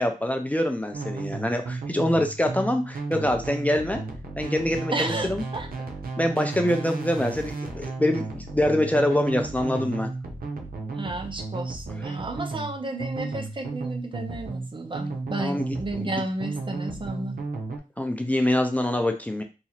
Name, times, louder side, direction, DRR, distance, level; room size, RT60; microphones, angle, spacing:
voice 1, 0.0-4.0 4.4-5.4 6.2-10.1 15.4-16.1 18.0-19.4, left 1 dB, 10° left, 5 dB, 0.4 m, -25 dB
sound 1, 0.9-17.8, right 3 dB, 85° right, 0.7 m, -34 dB
voice 2, 4.9-5.7 10.9-17.4, right 2 dB, 35° right, 5 dB, 0.6 m, -32 dB
2.9 x 2.4 x 4.2 m, 0.29 s
wide cardioid pair, 110°, 15 cm